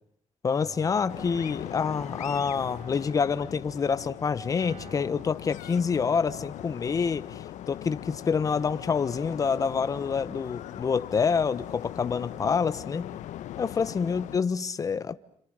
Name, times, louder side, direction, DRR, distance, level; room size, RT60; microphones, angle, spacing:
voice 1, 0.4-13.1 13.6-15.2, left 6 dB, 30° left, 1.2 m, -27 dB
Guitar, 0.6-2.1 2.6-6.5, equal, 60° right, 7.3 m, -51 dB
sound 1, 1.1-14.4, left 12 dB, 90° left, 1.1 m, -40 dB
29.5 x 28.0 x 6.7 m
cardioid pair, 175°, 12 cm